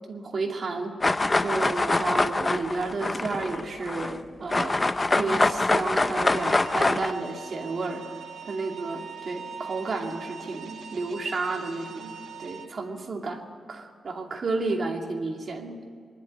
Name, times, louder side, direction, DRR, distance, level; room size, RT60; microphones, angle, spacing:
voice 1, 0.1-8.0 8.5-12.1 12.4-13.4 13.7-15.8, right 3 dB, 45° right, 2 dB, 2.4 m, -32 dB
sound 1, 1.0-4.2 4.5-7.1, left 2 dB, 20° left, 0.6 m, -24 dB
sound 2, 6.2-12.7, right 7 dB, 70° right, 1.8 m, -42 dB
22.5 x 12.0 x 10.0 m, 2.1 s
wide cardioid pair, 140°, 0 cm